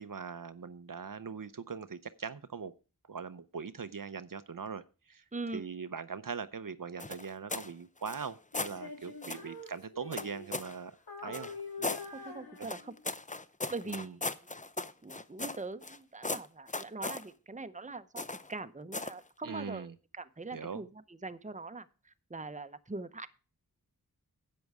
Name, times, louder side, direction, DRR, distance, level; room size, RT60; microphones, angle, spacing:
voice 1, 0.0-2.7 3.1-5.2 5.5-10.9 11.2-11.5 11.8-11.9 12.2-12.3 12.6-12.7 13.8-14.2 19.4-20.0 20.5-20.8, right 6 dB, 60° right, 13 dB, 0.7 m, -41 dB
voice 2, 5.3-5.6 12.1-12.9 13.7-14.4 15.0-18.2 18.5-20.9 21.2-21.8 22.3-23.3, right 3 dB, 20° right, 12 dB, 0.8 m, -42 dB
sound 1, 7.0-7.7 8.0-8.8 9.2-9.5 10.1-10.8 11.3-12.1 12.6-16.0 16.2-17.2 18.2-18.5 18.9-19.2, left 2 dB, 20° left, 0.6 m, -37 dB
Female singing, 8.5-10.8 11.1-13.1, left 3 dB, 80° left, 2.0 m, -46 dB
10.5 x 7.7 x 4.8 m, 0.34 s
wide cardioid pair, 50°, 36 cm